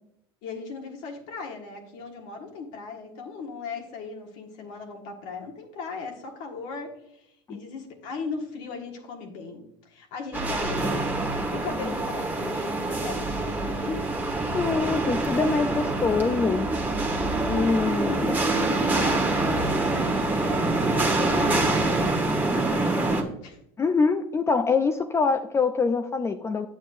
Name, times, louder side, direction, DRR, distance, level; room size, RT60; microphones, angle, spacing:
voice 1, 0.4-14.1 17.7-18.3 18.7-23.6, left 4 dB, 65° left, 2 dB, 1.5 m, -38 dB
sound 1, 10.3-23.2, right 2 dB, 15° right, 1.2 m, -25 dB
voice 2, 14.5-16.7 17.5-18.4 23.8-26.7, left 4 dB, 20° left, 8 dB, 0.4 m, -24 dB
8.8 x 7.2 x 2.5 m, 0.76 s
supercardioid pair, 105°, 13 cm